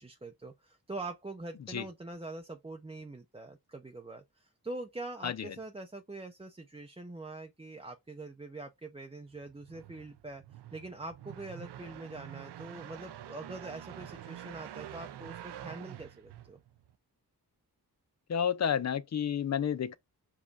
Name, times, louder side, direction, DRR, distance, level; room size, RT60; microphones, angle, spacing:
voice 1, 0.0-10.4 10.7-16.6, right 2 dB, 15° right, 0.6 m, -44 dB
voice 2, 5.2-5.6 18.3-20.0, left 8 dB, 45° left, 0.5 m, -31 dB
sound 1, 9.3-16.9, right 11 dB, 85° right, 0.6 m, -47 dB
5.1 x 2.3 x 4.1 m
cardioid pair, 70°, 39 cm